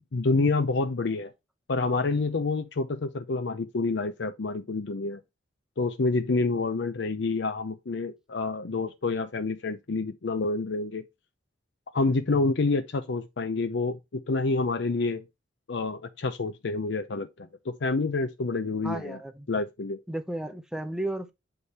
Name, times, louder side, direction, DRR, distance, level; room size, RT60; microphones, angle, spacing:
voice 1, 0.1-1.3 1.7-5.2 5.8-11.0 11.9-15.2 15.7-19.2 19.5-20.0, left 3 dB, 65° left, 0.6 m, -28 dB
voice 2, 18.8-19.5 20.1-21.3, right 1 dB, 5° right, 0.6 m, -33 dB
8.1 x 3.6 x 4.2 m
head